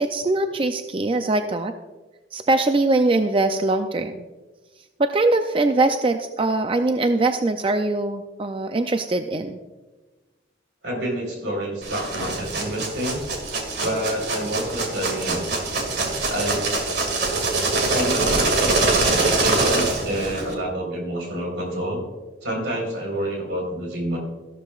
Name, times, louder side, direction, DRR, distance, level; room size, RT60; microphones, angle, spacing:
voice 1, 0.0-1.7 2.3-4.2 5.0-9.6, right 2 dB, 30° right, 7 dB, 0.4 m, -22 dB
voice 2, 10.8-13.2 13.8-15.4 16.3-16.7 17.9-22.0 22.4-24.2, right 1 dB, 80° right, 0 dB, 4.1 m, -28 dB
sound 1, 11.8-20.5, right 3 dB, 60° right, 2.2 m, -24 dB
14.0 x 12.0 x 2.4 m, 1.2 s
head